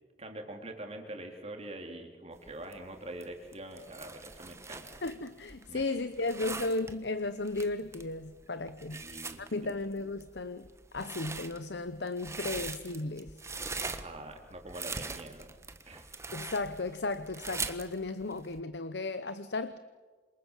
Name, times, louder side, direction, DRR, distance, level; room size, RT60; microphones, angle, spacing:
voice 1, 0.2-5.0 5.7-5.9 8.9-9.8 13.8-15.5 15.8-16.1, right 1 dB, 35° right, 3 dB, 4.0 m, -44 dB
sound 1, 2.4-18.6, right 4 dB, 15° right, 1.4 m, -42 dB
voice 2, 5.0-9.0 9.4-10.7 10.9-13.4 16.3-19.8, left 2 dB, 65° left, 12 dB, 1.0 m, -35 dB
28.0 x 27.0 x 7.6 m, 1.4 s
head